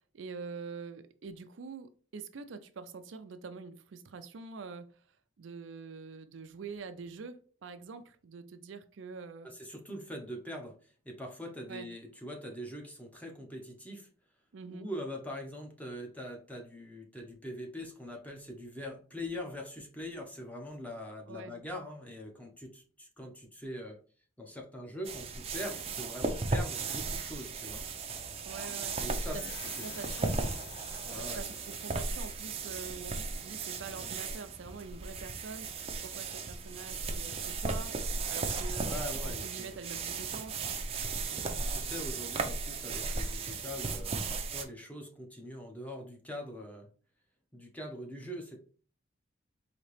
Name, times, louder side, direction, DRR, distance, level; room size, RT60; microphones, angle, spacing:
voice 1, 0.1-5.0 5.4-9.5 11.7-11.9 14.5-14.9 21.3-21.5 28.5-29.0 29.3-29.4 29.8-30.4 31.3-40.7, right 5 dB, 80° right, 0.5 m, -45 dB
voice 2, 9.4-10.7 11.0-14.1 14.7-24.0 24.4-27.8 29.0-29.4 31.0-31.4 38.9-39.8 41.3-46.9 47.5-48.6, equal, 10° left, 0.8 m, -42 dB
Paper bag, 25.0-44.6, right 4 dB, 30° right, 0.5 m, -36 dB
sound 1, 29.1-32.8, left 5 dB, 60° left, 0.9 m, -48 dB
4.1 x 2.8 x 3.2 m
head